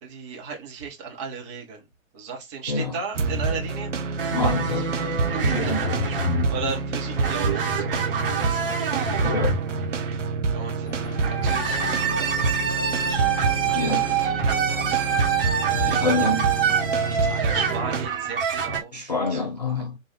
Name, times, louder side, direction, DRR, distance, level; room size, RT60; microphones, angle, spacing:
voice 1, 0.0-1.9 2.1-3.9 4.4-9.3 10.5-10.9 11.3-13.3 13.5-15.1 15.6-16.0 17.2-18.9 19.2-19.9, right 5 dB, 20° right, 1.2 m, -36 dB
sound 1, 3.1-18.1, right 4 dB, 60° right, 0.8 m, -27 dB
sound 2, 4.2-10.2 11.1-18.8, right 6 dB, 40° right, 1.3 m, -26 dB
voice 2, 4.3-4.8 5.4-5.8 9.2-9.6 13.7-14.0 15.8-16.5 18.9-20.0, left 3 dB, 35° left, 0.4 m, -26 dB
sound 3, 10.8-17.8, left 3 dB, 60° left, 0.9 m, -39 dB
4.3 x 2.6 x 3.3 m
figure-of-eight pair, 130°, 41 cm